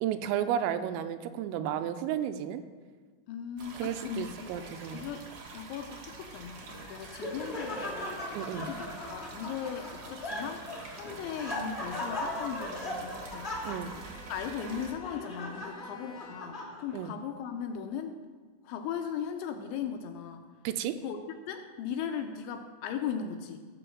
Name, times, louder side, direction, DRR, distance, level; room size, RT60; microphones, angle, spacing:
voice 1, 0.0-2.6 3.8-5.0 8.3-8.7 13.6-14.0 16.9-17.1 20.6-21.0, right 10 dB, 90° right, 10 dB, 3.4 m, -32 dB
voice 2, 3.3-5.3 5.5-8.3 8.5-10.6 10.9-13.5 14.3-18.2 18.6-20.5 21.0-21.2 21.5-23.6, left 8 dB, 80° left, 5 dB, 2.8 m, -38 dB
sound 1, 3.6-14.9, right 4 dB, 60° right, 2.1 m, -46 dB
Laughter, 6.6-17.1, left 1 dB, 45° left, 0.7 m, -39 dB
Bowed string instrument, 12.7-16.8, left 1 dB, 65° left, 2.5 m, -53 dB
17.0 x 6.1 x 7.2 m, 1.5 s
omnidirectional pair, 5.9 m